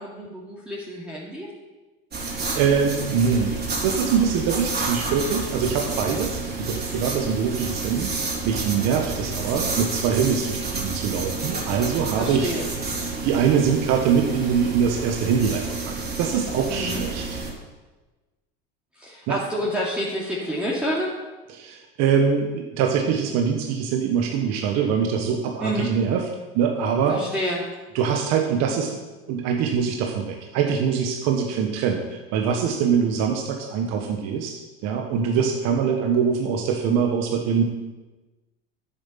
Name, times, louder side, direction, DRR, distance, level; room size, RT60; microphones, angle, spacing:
voice 1, 0.0-1.5 12.2-12.6 16.7-17.0 19.0-21.1 25.6-25.9 27.1-27.6, equal, 5° right, -6 dB, 2.5 m, -28 dB
sound 1, 2.1-17.5, right 3 dB, 30° right, 3.7 m, -30 dB
voice 2, 2.2-3.5 3.8-12.5 13.2-17.4 19.3-19.4 21.5-26.2 26.5-27.2 27.9-28.9 29.3-34.5 34.8-37.6, right 6 dB, 60° right, 2 dB, 1.4 m, -23 dB
9.8 x 8.0 x 5.8 m, 1.2 s
hypercardioid pair, 90°, 30 cm